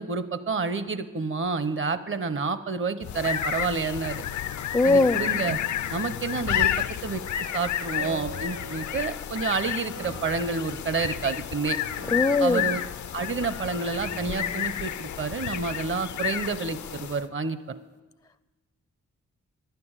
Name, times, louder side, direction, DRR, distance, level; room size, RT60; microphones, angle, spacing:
voice 1, 0.0-4.2 4.8-5.6 5.9-6.7 7.0-7.2 7.5-11.8 12.4-12.8 13.1-17.6, right 4 dB, 40° right, 13 dB, 0.8 m, -29 dB
sound 1, 3.0-17.3, left 11 dB, 70° left, 0.5 m, -31 dB
voice 2, 4.7-5.2 12.1-12.7, left 3 dB, 10° left, 13 dB, 0.4 m, -20 dB
Piano, 8.0-15.9, right 1 dB, 70° right, 4.9 m, -44 dB
10.5 x 6.9 x 8.8 m, 1.2 s
cardioid pair, 60°, 30 cm